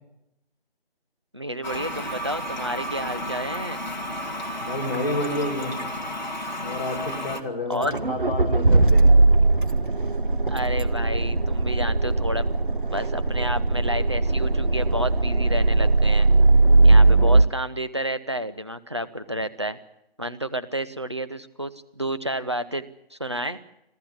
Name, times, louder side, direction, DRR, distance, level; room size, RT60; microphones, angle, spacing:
voice 1, 1.3-3.8 7.7-8.0 10.5-12.5 12.9-16.3 16.8-19.8 20.2-23.6, equal, 30° right, 11 dB, 0.7 m, -30 dB
Toilet flush, 1.6-7.4, equal, 45° left, 1.9 m, -32 dB
voice 2, 4.6-5.7 6.6-9.0, left 1 dB, 20° left, -4 dB, 3.0 m, -29 dB
Accelerating revving vroom, 7.8-17.4, right 2 dB, 55° right, 1.5 m, -19 dB
26.5 x 13.5 x 8.6 m, 0.87 s
figure-of-eight pair, 175°, 31 cm